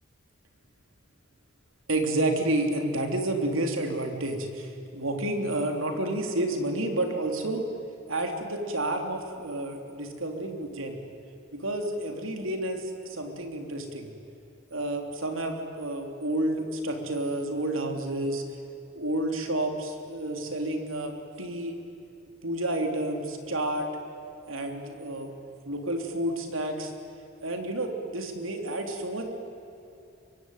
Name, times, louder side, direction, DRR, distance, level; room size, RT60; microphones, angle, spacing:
voice 1, 1.9-7.6 8.1-11.0 11.5-14.1 14.7-18.4 18.9-21.8 22.4-23.9 24.5-25.3 25.6-26.9 27.4-29.4, right 1 dB, 85° right, 4 dB, 3.4 m, -30 dB
24.0 x 23.0 x 9.3 m, 2.7 s
head